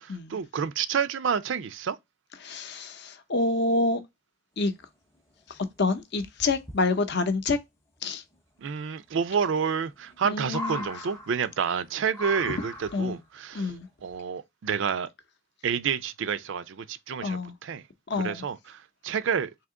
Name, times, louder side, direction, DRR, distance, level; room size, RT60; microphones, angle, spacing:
voice 1, 0.0-2.0 8.6-13.7 14.0-15.1 15.6-17.8 18.2-19.5, right 6 dB, 60° right, 0.4 m, -29 dB
voice 2, 2.4-4.0 4.6-4.7 5.5-7.6 8.0-8.2 10.2-10.9 12.9-13.2 13.5-13.9 17.2-17.5 18.1-18.4, left 3 dB, 50° left, 0.7 m, -27 dB
sound 1, 5.1-5.2 5.5-5.6 6.2-6.8 8.3-8.4 9.7-10.2 10.4-11.7 12.1-13.2 14.1-14.2, left 1 dB, 10° left, 0.6 m, -38 dB
3.5 x 2.8 x 3.6 m
head